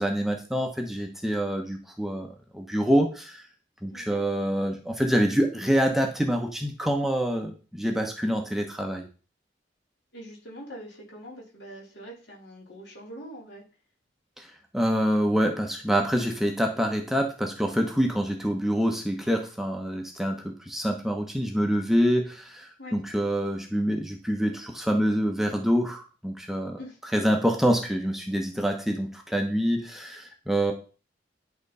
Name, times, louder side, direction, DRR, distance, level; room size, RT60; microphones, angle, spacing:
voice 1, 0.0-3.4 3.8-9.1 14.4-14.5 14.7-26.8 27.1-30.7, equal, ahead, 2 dB, 0.9 m, -26 dB
voice 2, 3.9-4.2 10.1-13.6 22.8-23.0 26.8-27.0, equal, 70° left, -3 dB, 3.7 m, -43 dB
10.5 x 3.9 x 5.4 m, 0.36 s
head